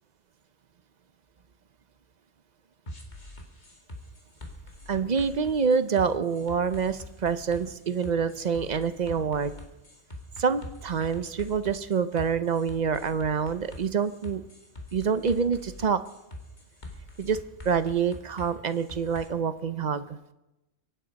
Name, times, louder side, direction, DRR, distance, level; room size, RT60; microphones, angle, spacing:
sound 1, 2.9-19.3, left 1 dB, 35° left, 2.1 m, -44 dB
voice 1, 4.9-9.5 10.4-14.4 14.9-16.0 17.2-17.4 17.6-20.2, right 6 dB, 45° right, 12 dB, 0.6 m, -26 dB
23.5 x 9.0 x 5.3 m, 0.95 s
omnidirectional pair, 1.4 m